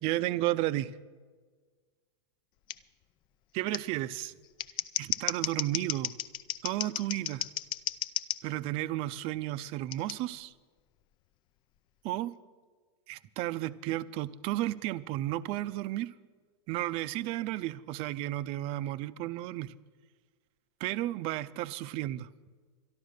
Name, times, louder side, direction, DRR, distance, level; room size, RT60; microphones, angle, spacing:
voice 1, 0.0-0.9 3.5-4.3 5.0-6.1 6.6-7.5 8.4-10.5 12.0-12.3 13.1-16.1 16.7-19.7 20.8-22.3, right 15 dB, 40° right, 15 dB, 0.5 m, -33 dB
Scissors, 2.7-2.8 3.7-3.8 4.4-8.4 9.9-10.1, left 12 dB, 30° left, 0.4 m, -34 dB
12.0 x 11.5 x 6.5 m, 1.4 s
hypercardioid pair, 120°, 15 cm